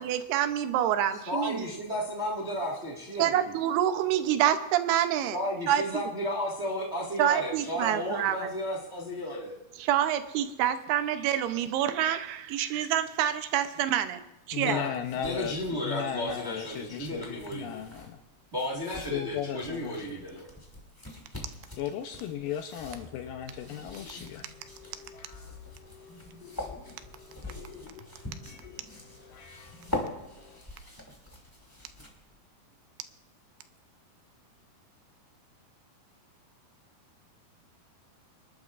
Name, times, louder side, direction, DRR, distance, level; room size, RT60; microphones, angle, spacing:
voice 1, 0.0-1.7 3.2-5.4 5.7-5.8 7.2-8.5 9.8-14.2 14.5-14.8, right 11 dB, 85° right, 10 dB, 2.7 m, -27 dB
voice 2, 1.3-3.5 5.3-9.5 14.6-17.8 18.5-20.5, equal, 50° right, -3 dB, 0.7 m, -33 dB
voice 3, 14.5-18.2 19.1-20.0 21.8-24.5, left 9 dB, 80° left, 6 dB, 2.1 m, -36 dB
sound 1, 14.6-32.4, left 1 dB, 10° left, 1.1 m, -44 dB
sound 2, 22.8-30.6, left 5 dB, 65° left, 2.8 m, -51 dB
26.0 x 11.5 x 2.5 m, 0.94 s
omnidirectional pair, 4.6 m